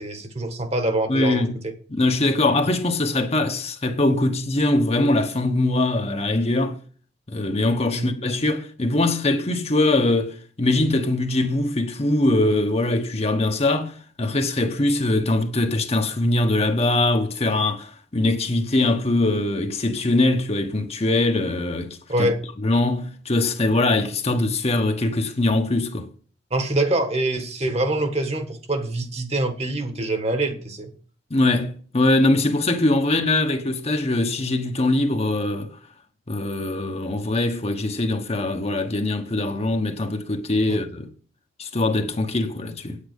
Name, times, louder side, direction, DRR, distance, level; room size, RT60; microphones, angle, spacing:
voice 1, 0.0-1.4 7.9-8.1 22.1-22.4 26.5-30.9 40.7-40.8, right 1 dB, 35° right, 1.5 m, -25 dB
voice 2, 1.1-1.6 1.9-6.8 7.3-22.3 22.6-26.1 31.3-35.8 36.3-41.1 41.6-43.0, left 2 dB, 35° left, 1.1 m, -22 dB
8.9 x 8.5 x 5.2 m
head